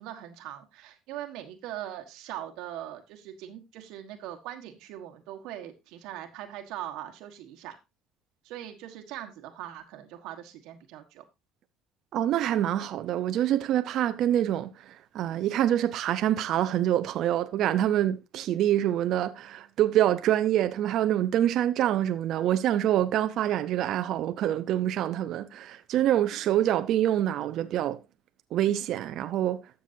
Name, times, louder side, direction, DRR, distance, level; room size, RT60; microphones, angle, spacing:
voice 1, 0.0-7.8 8.4-11.2, right 12 dB, 75° right, 1.4 m, -41 dB
voice 2, 12.1-28.0 28.5-29.6, right 12 dB, 60° right, 0.7 m, -26 dB
13.0 x 7.0 x 2.7 m
cardioid pair, 110°, 0 cm